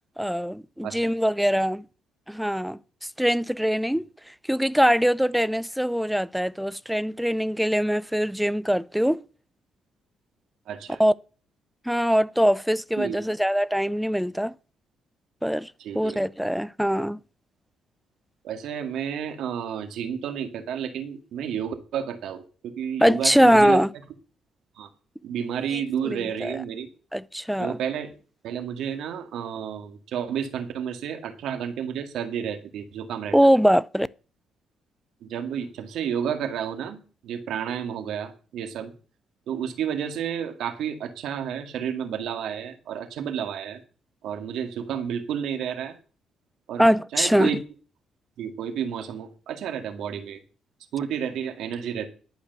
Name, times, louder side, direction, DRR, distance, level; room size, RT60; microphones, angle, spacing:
voice 1, 0.2-1.9 2.3-2.8 3.2-4.1 4.5-9.2 11.0-11.1 11.9-14.6 15.4-17.2 23.0-23.9 25.7-26.6 27.1-27.8 33.3-34.1 46.8-47.5, equal, ahead, 0.5 m, -22 dB
voice 2, 10.7-11.0 13.0-13.2 15.8-16.2 18.4-23.8 24.8-24.9 25.2-26.9 27.6-28.1 28.4-33.4 35.2-38.9 39.5-43.8 44.2-45.9 46.7-46.8 47.1-47.6 48.4-50.4 50.9-52.1, right 8 dB, 80° right, 2.0 m, -31 dB
11.5 x 5.0 x 8.0 m
cardioid pair, 90°, 0 cm